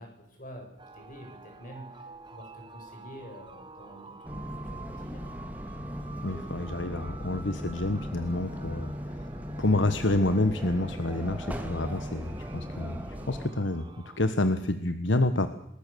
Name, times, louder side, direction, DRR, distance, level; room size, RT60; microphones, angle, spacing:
voice 1, 0.0-5.2, equal, 45° left, 3 dB, 7.4 m, -47 dB
sound 1, 0.8-14.2, right 3 dB, 25° right, 1.4 m, -49 dB
sound 2, 4.2-13.5, equal, 10° right, 2.5 m, -38 dB
voice 2, 6.2-9.3 9.6-13.8 14.2-15.5, left 2 dB, 70° left, 10 dB, 1.3 m, -28 dB
27.5 x 20.5 x 7.0 m, 0.75 s
head